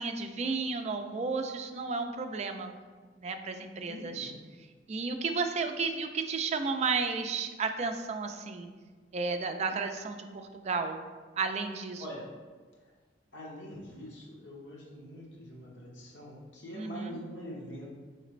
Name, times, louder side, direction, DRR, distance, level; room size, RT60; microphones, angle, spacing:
voice 1, 0.0-2.7 3.2-4.3 4.9-8.7 9.1-11.0 11.4-12.0 16.7-17.2, right 4 dB, 40° right, 6 dB, 0.3 m, -33 dB
voice 2, 3.9-4.4 12.0-12.3 13.3-17.9, equal, 85° left, -3 dB, 1.1 m, -44 dB
4.9 x 3.2 x 3.2 m, 1.4 s
head